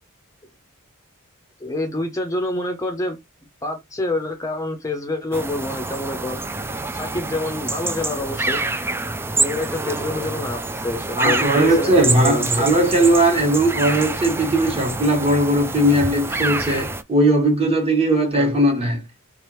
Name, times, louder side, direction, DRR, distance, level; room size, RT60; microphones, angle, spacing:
voice 1, 1.6-3.2 3.6-6.4 6.9-8.6 9.4-12.8 18.3-18.5, left 2 dB, 15° left, 0.7 m, -27 dB
sound 1, 5.3-17.0, right 3 dB, 10° right, 0.3 m, -26 dB
voice 2, 11.2-19.0, right 1 dB, 25° right, 1.3 m, -18 dB
3.7 x 3.3 x 3.0 m
head